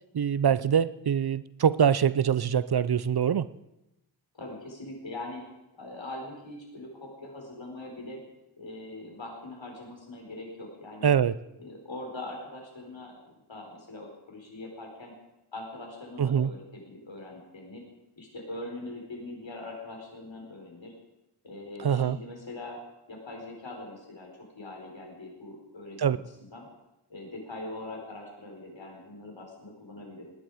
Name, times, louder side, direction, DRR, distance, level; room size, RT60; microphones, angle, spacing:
voice 1, 0.1-3.5 11.0-11.3 16.2-16.5 21.8-22.2 26.0-26.2, right 8 dB, 55° right, 17 dB, 0.6 m, -24 dB
voice 2, 4.3-5.5 5.7-8.2 8.6-11.1 11.6-13.2 13.5-15.1 15.5-17.8 18.2-20.9 21.4-22.8 23.1-24.3 24.6-26.7 27.1-30.3, left 2 dB, 70° left, 0 dB, 4.6 m, -42 dB
19.0 x 10.5 x 4.9 m, 0.93 s
wide cardioid pair, 60°, 46 cm